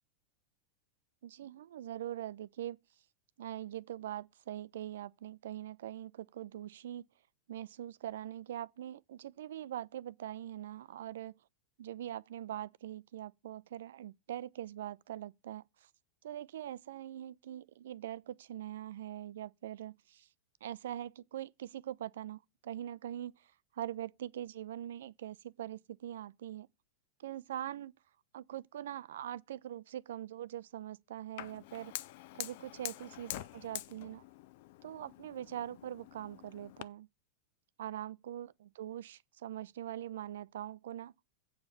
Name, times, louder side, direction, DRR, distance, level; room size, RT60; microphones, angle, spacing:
voice 1, 1.2-2.8 3.4-7.1 7.5-11.4 11.8-15.9 16.2-20.3 20.6-26.7 27.2-27.9 28.3-31.9 32.4-34.2 34.8-37.1 37.8-41.1, right 11 dB, 60° right, 0.4 m, -43 dB
Fire, 31.4-36.8, left 16 dB, 50° left, 0.4 m, -46 dB
8.2 x 4.9 x 6.8 m
figure-of-eight pair, 90°, 0 cm